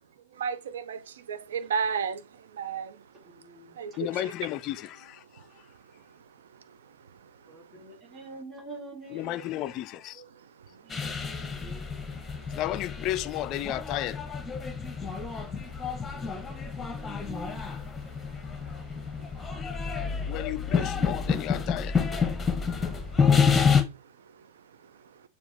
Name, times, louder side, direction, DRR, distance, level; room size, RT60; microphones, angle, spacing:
voice 1, 0.4-2.2 2.5-3.0 3.8-4.3, right 6 dB, 65° right, 0.3 m, -32 dB
voice 2, 3.1-4.1 7.4-12.1 15.9-18.7, right 3 dB, 20° right, 2.8 m, -49 dB
voice 3, 4.0-5.2 9.2-10.1 12.6-14.2 20.3-21.9, left 14 dB, 40° left, 0.3 m, -33 dB
sound 1, 10.9-23.8, left 6 dB, 15° left, 0.7 m, -28 dB
6.8 x 2.4 x 3.2 m
figure-of-eight pair, 90°, 0 cm